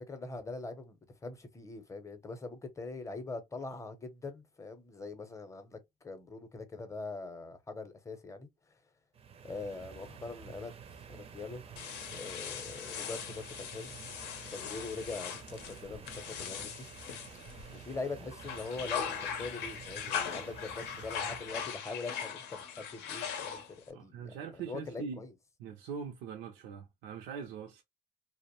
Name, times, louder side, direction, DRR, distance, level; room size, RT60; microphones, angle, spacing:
voice 1, 0.1-1.0 1.2-8.5 9.4-10.8 11.1-11.8 12.1-13.9 14.5-16.9 17.7-25.3, left 3 dB, 20° left, 0.6 m, -42 dB
sound 1, 9.1-21.8, right 7 dB, 35° right, 0.4 m, -50 dB
sound 2, 11.8-17.9 18.3-23.9, left 7 dB, 80° left, 0.6 m, -40 dB
voice 2, 23.9-25.2 25.6-27.8, right 6 dB, 90° right, 0.5 m, -42 dB
2.5 x 2.0 x 2.8 m
cardioid pair, 110°, 17 cm